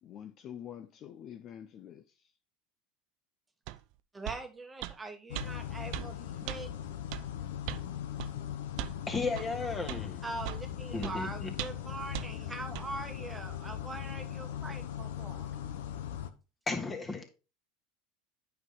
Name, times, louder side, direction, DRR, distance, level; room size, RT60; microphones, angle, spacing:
voice 1, 0.0-2.0, left 9 dB, 45° left, 0.7 m, -46 dB
sound 1, 3.7-3.8 4.3-4.4 4.8-5.0 5.4-5.5 5.9-6.1 6.5-6.6 7.1-7.3 7.7-7.9 8.2-8.3 8.8-9.0 9.4-9.5 9.9-10.0 10.4-10.7 11.0-11.2 11.6-11.9 12.1-12.3 12.8-12.9, right 17 dB, 65° right, 0.5 m, -38 dB
voice 2, 4.1-6.7 10.2-15.5, right 2 dB, 15° right, 1.3 m, -42 dB
sound 2, 5.3-16.3, left 10 dB, 85° left, 0.9 m, -39 dB
voice 3, 9.1-10.2 10.9-11.5 16.7-17.3, left 3 dB, 20° left, 2.0 m, -34 dB
8.9 x 5.7 x 3.8 m
supercardioid pair, 105°, 0 cm